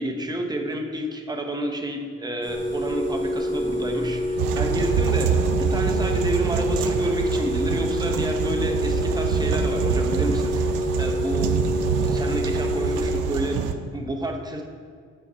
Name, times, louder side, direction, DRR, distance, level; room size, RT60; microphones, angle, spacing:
voice 1, 0.0-11.6 12.0-14.7, right 1 dB, 15° right, 2 dB, 0.9 m, -30 dB
sound 1, 2.4-13.2, left 1 dB, 40° right, 1.2 m, -27 dB
sound 2, 4.4-13.7, right 7 dB, 90° right, 0.6 m, -25 dB
7.7 x 4.0 x 4.4 m, 2.1 s
cardioid pair, 90°, 30 cm